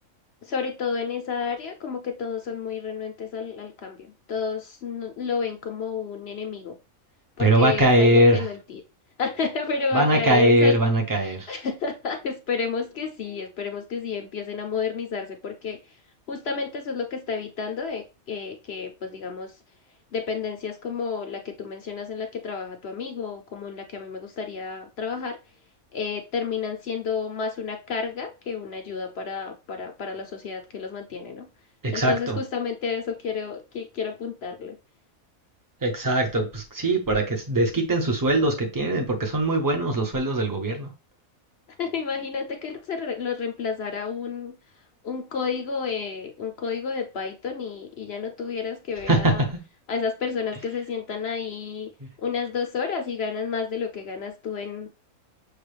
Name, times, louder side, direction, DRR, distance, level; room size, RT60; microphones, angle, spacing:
voice 1, 0.4-6.8 7.4-8.8 9.2-10.8 11.2-16.0 16.3-19.6 20.1-25.4 25.9-31.5 31.9-34.8 41.8-44.6 45.0-49.5 49.9-51.9 52.2-54.9, left 5 dB, 55° left, 5 dB, 0.8 m, -31 dB
voice 2, 7.4-8.4 9.9-11.5 31.8-32.4 35.8-40.9 49.1-49.3, right 1 dB, 15° right, 3 dB, 0.8 m, -21 dB
6.6 x 2.4 x 3.3 m, 0.29 s
omnidirectional pair, 1.5 m